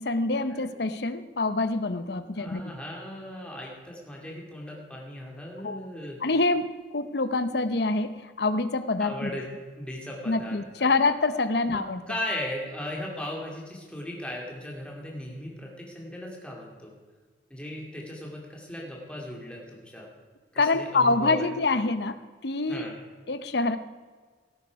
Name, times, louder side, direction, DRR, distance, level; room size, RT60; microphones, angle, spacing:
voice 1, 0.0-2.6 5.6-5.9 6.2-9.3 10.3-12.0 20.6-22.9 23.3-23.8, left 3 dB, 65° left, 12 dB, 0.8 m, -26 dB
voice 2, 2.3-6.2 9.0-9.5 9.8-10.9 11.7-11.8 12.1-16.9 17.5-20.1 20.5-21.5 22.7-22.9, left 1 dB, 5° left, -2 dB, 2.4 m, -37 dB
17.5 x 9.3 x 4.8 m, 1.4 s
head